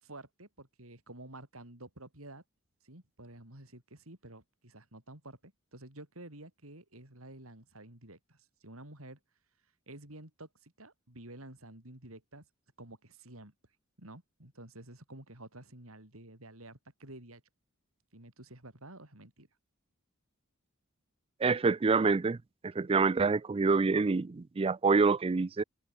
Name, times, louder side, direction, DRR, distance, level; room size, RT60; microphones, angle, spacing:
voice 1, 0.0-2.4 2.8-9.2 9.9-12.5 12.8-13.5 14.0-17.4 18.1-19.5, right 1 dB, 75° right, 6.0 m, -50 dB
voice 2, 21.4-22.4 22.6-25.6, right 4 dB, 25° right, 0.4 m, -26 dB
head